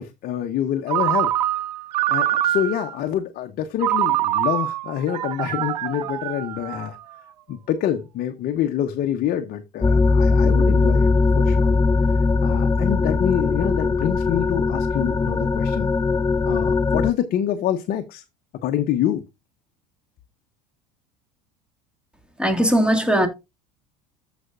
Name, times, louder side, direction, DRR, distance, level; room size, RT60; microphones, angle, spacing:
voice 1, 0.0-1.6 2.1-7.0 7.5-11.1 11.3-11.7 12.4-15.9 16.4-18.2 18.6-19.2, left 10 dB, 45° left, 1.0 m, -26 dB
Ringtone, 0.9-3.0 3.8-7.1, right 12 dB, 75° right, 0.7 m, -24 dB
sound 1, 9.8-17.1, left 4 dB, 15° left, 0.5 m, -20 dB
voice 2, 22.4-23.3, equal, 5° right, 2.1 m, -19 dB
14.0 x 5.2 x 2.4 m
hypercardioid pair, 75°, 21 cm